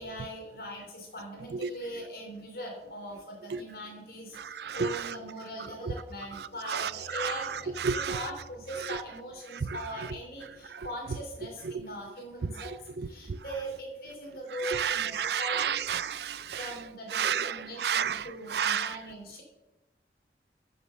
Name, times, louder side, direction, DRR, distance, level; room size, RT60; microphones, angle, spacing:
voice 1, 0.0-15.9 16.5-19.4, equal, 55° left, 2.9 m, -41 dB
voice 2, 4.4-5.1 5.9-6.0 6.7-8.2 8.8-9.0 9.5-9.8 10.7-10.9 11.6-11.8 12.6-12.7 13.0-13.4 14.6-16.7 17.1-19.0, right 7 dB, 70° right, 0.4 m, -31 dB
8.3 x 6.7 x 6.4 m
head